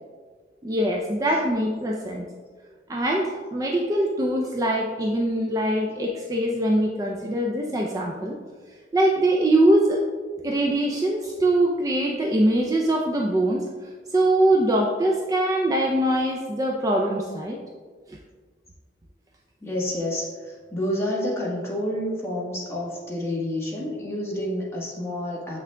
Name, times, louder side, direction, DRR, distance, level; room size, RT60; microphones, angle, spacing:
voice 1, 0.6-2.3 2.9-8.4 8.9-10.0 10.4-13.6 14.1-17.6, right 1 dB, 20° right, -1 dB, 0.4 m, -22 dB
voice 2, 19.6-25.6, left 1 dB, 15° left, -5 dB, 1.3 m, -29 dB
7.2 x 5.9 x 2.2 m, 1.5 s
head